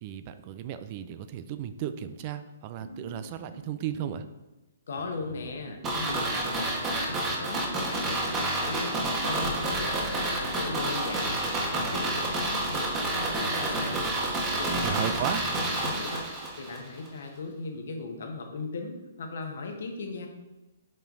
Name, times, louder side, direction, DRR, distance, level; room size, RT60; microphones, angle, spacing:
voice 1, 0.0-4.2 14.8-15.4, right 10 dB, 40° right, 10 dB, 0.4 m, -35 dB
sound 1, 2.8-4.2 5.0-8.1 10.5-12.0 12.7-15.9, right 1 dB, 85° right, 2.0 m, -46 dB
voice 2, 4.9-14.0 14.5-15.0 15.5-20.3, left 3 dB, 65° left, 3 dB, 1.2 m, -38 dB
sound 2, 5.8-16.8 17.1-17.2, right 2 dB, 20° right, 1.4 m, -29 dB
5.5 x 5.0 x 3.8 m, 1.1 s
hypercardioid pair, 135°, 0 cm